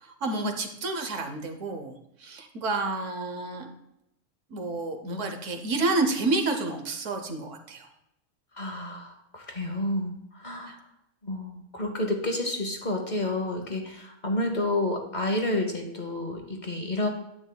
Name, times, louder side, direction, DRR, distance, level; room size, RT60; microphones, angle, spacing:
voice 1, 0.0-3.7 4.5-7.9 10.7-10.8, right 2 dB, 70° right, 5 dB, 1.2 m, -30 dB
voice 2, 8.5-10.8 11.2-17.1, left 1 dB, 40° left, 3 dB, 1.0 m, -30 dB
9.8 x 8.0 x 2.3 m, 0.80 s
omnidirectional pair, 1.4 m